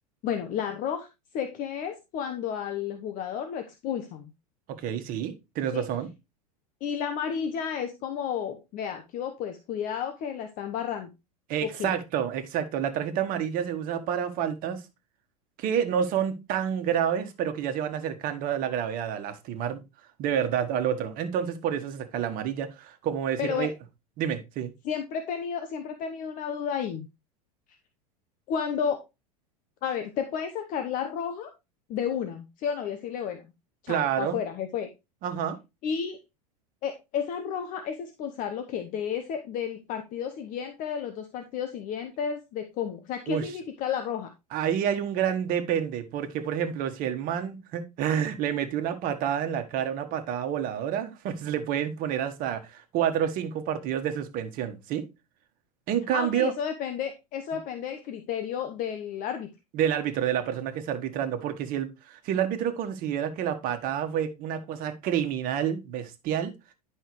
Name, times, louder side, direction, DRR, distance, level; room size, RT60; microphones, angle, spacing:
voice 1, 0.2-1.1 1.3-4.3 5.7-5.8 6.8-11.1 11.6-11.9 23.4-23.7 24.8-27.1 28.5-29.0 29.8-31.5 31.9-33.4 33.8-34.9 35.8-36.2 36.8-44.3 56.1-59.5, left 8 dB, 45° left, 1.0 m, -32 dB
voice 2, 4.7-6.1 11.5-14.8 15.6-19.8 20.2-23.7 24.2-24.7 33.9-34.4 35.2-35.6 43.3-43.5 44.5-55.0 55.9-56.5 59.7-66.5, right 9 dB, 45° right, 1.4 m, -29 dB
10.5 x 5.6 x 3.1 m
hypercardioid pair, 90°, 19 cm